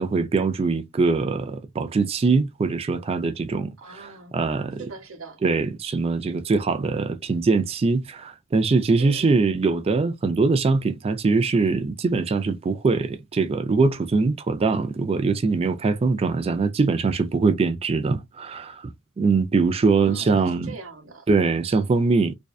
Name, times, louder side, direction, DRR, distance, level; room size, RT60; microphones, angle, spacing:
voice 1, 0.0-4.8 5.4-18.9 19.2-20.7 21.3-22.3, right 4 dB, 30° right, 0.3 m, -22 dB
voice 2, 3.8-4.4 4.8-5.4 9.0-9.4 19.9-21.3, right 4 dB, 75° right, 0.9 m, -41 dB
2.6 x 2.2 x 2.3 m
head